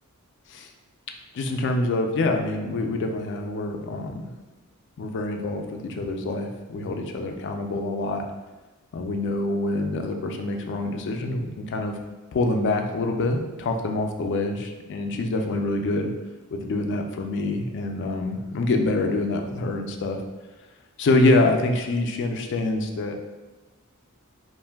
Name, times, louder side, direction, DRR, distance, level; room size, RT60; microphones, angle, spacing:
voice 1, 1.3-4.2 5.0-8.2 8.9-11.9 12.3-16.1 16.5-20.2 21.0-23.1, left 2 dB, 55° left, 4 dB, 0.3 m, -25 dB
2.5 x 2.2 x 3.3 m, 1.2 s
head